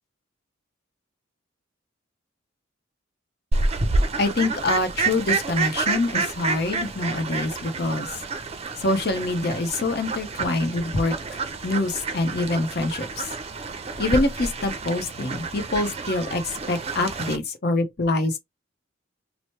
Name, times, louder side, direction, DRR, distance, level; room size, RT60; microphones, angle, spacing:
Fowl, 3.5-17.4, right 3 dB, 30° right, 0.5 m, -29 dB
voice 1, 4.2-8.1 8.8-11.1 11.6-13.3 14.0-16.4 16.7-18.4, left 2 dB, 55° left, 0.8 m, -25 dB
3.0 x 2.0 x 3.0 m
head